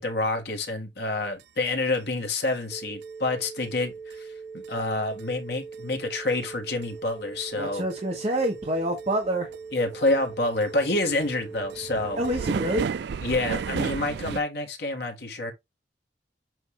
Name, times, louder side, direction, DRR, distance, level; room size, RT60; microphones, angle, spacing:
voice 1, 0.0-4.3 4.5-7.9 9.7-12.2 13.2-15.5, left 2 dB, 60° left, 1.7 m, -28 dB
sound 1, 1.4-1.5 1.9-2.0 2.5-2.6 3.0-3.1 3.6-3.7 4.1-4.2 4.6-4.7 5.2-5.3 5.7-5.8 6.3-6.4 6.8-6.9 7.4-7.5 7.9-8.0 8.4-8.5 9.0-9.3 9.5-9.6 9.9-14.4, right 6 dB, 65° right, 0.3 m, -32 dB
sound 2, 2.7-12.7, right 5 dB, 5° left, 0.9 m, -41 dB
voice 2, 7.6-9.5 12.2-12.9, right 1 dB, 35° right, 1.4 m, -27 dB
8.0 x 2.7 x 4.7 m
head